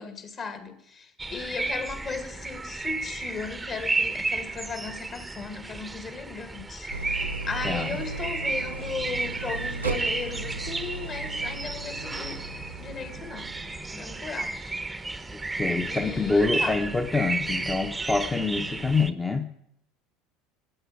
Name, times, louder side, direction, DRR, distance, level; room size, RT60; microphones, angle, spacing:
voice 1, 0.0-12.4 12.8-13.5 13.9-14.6 14.9-15.2 15.9-16.8, left 5 dB, 35° left, 2.3 m, -37 dB
sound 1, 1.2-19.1, right 3 dB, 10° right, 1.0 m, -33 dB
Idling, 6.9-14.0, right 3 dB, 85° right, 0.6 m, -37 dB
voice 2, 7.6-8.0 15.5-19.5, left 3 dB, 15° left, 1.1 m, -26 dB
15.0 x 9.3 x 7.3 m
figure-of-eight pair, 70°, 0 cm